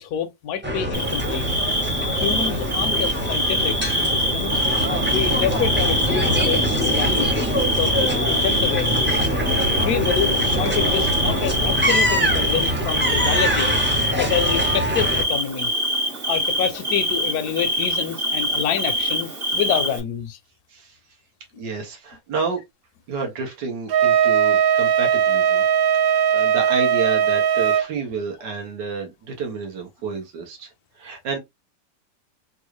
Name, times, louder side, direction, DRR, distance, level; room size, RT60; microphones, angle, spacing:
voice 1, 0.0-1.5 2.2-3.8 4.1-4.6 5.1-7.5 7.8-9.2 9.8-13.8 14.2-15.7 16.3-20.4, left 8 dB, 70° left, 1.0 m, -27 dB
sound 1, 0.6-15.2, equal, 15° right, 0.4 m, -23 dB
Bird / Cricket, 0.9-20.0, equal, 40° right, 1.0 m, -25 dB
voice 2, 21.6-22.6 23.1-25.6 26.0-31.4, right 5 dB, 85° right, 1.7 m, -30 dB
Wind instrument woodwind instrument, 23.9-27.9, right 8 dB, 65° right, 1.0 m, -19 dB
3.8 x 2.4 x 3.0 m
omnidirectional pair, 1.8 m